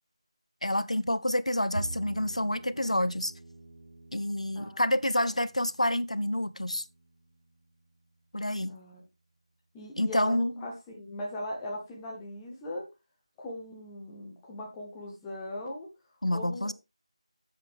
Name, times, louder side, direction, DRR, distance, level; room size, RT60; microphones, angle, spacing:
voice 1, 0.6-3.3 4.1-6.8 8.3-8.7 10.0-10.5 16.2-16.7, left 1 dB, 80° left, 0.8 m, -28 dB
Bowed string instrument, 1.7-8.1, right 2 dB, 55° right, 1.1 m, -45 dB
voice 2, 8.7-9.0 9.7-12.9 13.4-15.9 16.3-16.7, left 1 dB, 5° left, 0.9 m, -39 dB
10.5 x 7.6 x 3.6 m
figure-of-eight pair, 170°, 3 cm